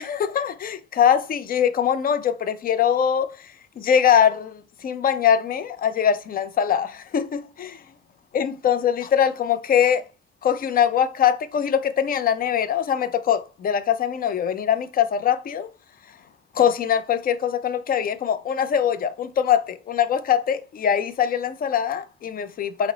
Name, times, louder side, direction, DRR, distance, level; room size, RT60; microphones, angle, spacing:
voice 1, 0.0-7.8 8.3-10.0 10.4-15.7 16.5-22.9, left 8 dB, 45° left, 0.5 m, -22 dB
4.1 x 2.0 x 3.9 m
cardioid pair, 90°, 20 cm